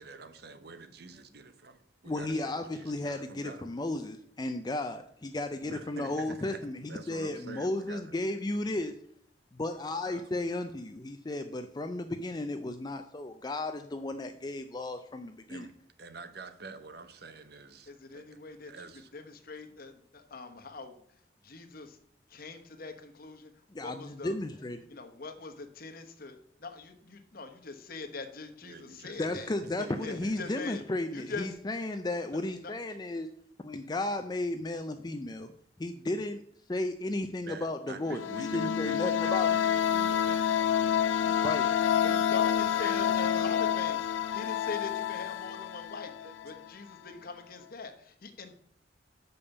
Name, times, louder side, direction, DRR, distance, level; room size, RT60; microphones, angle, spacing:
voice 1, 0.0-3.7 5.7-8.1 9.8-10.3 15.5-15.7 16.0-18.2 18.7-19.1 28.6-30.5 37.4-42.4 42.8-43.4 43.7-43.9 46.2-46.3, right 3 dB, 60° right, 0.8 m, -47 dB
voice 2, 2.1-8.9 9.6-15.7 23.7-24.8 29.2-33.3 33.6-35.5 35.8-36.4 36.7-39.5 41.4-41.7, left 2 dB, 20° left, 0.4 m, -34 dB
voice 3, 17.9-21.0 21.4-22.0 22.3-24.3 24.9-29.5 30.0-30.8 31.1-31.6 32.3-32.7 33.1-33.2 42.0-44.0 44.3-48.6, left 4 dB, 50° left, 1.1 m, -42 dB
sound 1, 38.1-46.7, left 9 dB, 85° left, 0.4 m, -28 dB
6.8 x 5.3 x 6.9 m
head